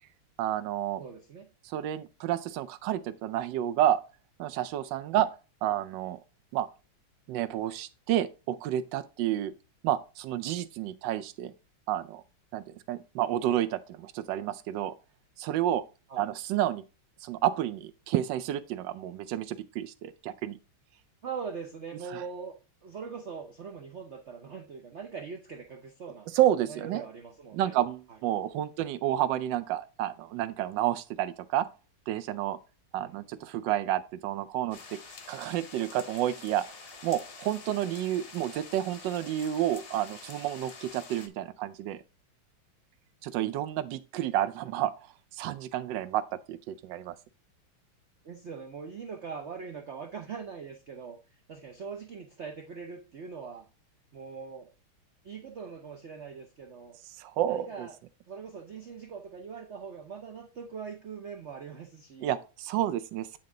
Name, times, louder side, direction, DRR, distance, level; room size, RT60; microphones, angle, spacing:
voice 1, 0.4-1.0 1.7-4.0 4.4-5.3 5.6-6.2 6.5-6.7 7.3-9.5 9.8-11.5 11.9-12.2 12.5-14.9 15.4-15.8 16.2-16.8 17.2-20.6 26.3-27.0 27.5-31.6 32.1-32.6 32.9-35.0 35.3-36.6 37.0-42.0 43.2-44.9 45.3-46.2 46.5-47.2 57.2-57.9 62.2-63.4, right 12 dB, 75° right, 1.2 m, -30 dB
voice 2, 1.0-1.5 5.1-5.3 16.1-16.3 21.2-22.5 22.8-26.3 26.7-27.8 28.1-28.2 33.0-33.1 48.2-51.2 51.5-53.7 54.1-54.7 55.2-57.0 57.4-58.0 58.3-62.4, right 6 dB, 90° right, 0.6 m, -42 dB
sound 1, 34.7-41.3, left 4 dB, 45° left, 0.8 m, -47 dB
8.6 x 4.0 x 3.7 m
omnidirectional pair, 2.3 m